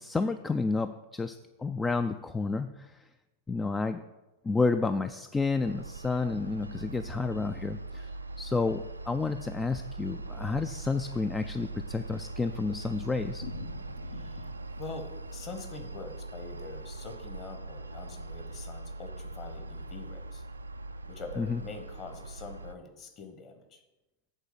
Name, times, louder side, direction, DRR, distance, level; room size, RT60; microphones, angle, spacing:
voice 1, 0.0-2.9 3.5-4.0 4.4-8.1 8.4-13.4 21.4-21.6, left 4 dB, 15° left, 10 dB, 0.3 m, -30 dB
sound 1, 5.6-22.7, right 2 dB, 80° right, 0.3 m, -41 dB
Thunder, 11.9-17.8 18.0-18.1 18.4-18.5 18.8-18.9 19.4-19.8, left 5 dB, 65° left, 0.8 m, -49 dB
voice 2, 14.1-14.5 14.8-20.4 21.1-23.8, left 3 dB, 30° left, 6 dB, 1.2 m, -45 dB
8.1 x 3.9 x 6.8 m, 1.1 s
figure-of-eight pair, 90°, 0 cm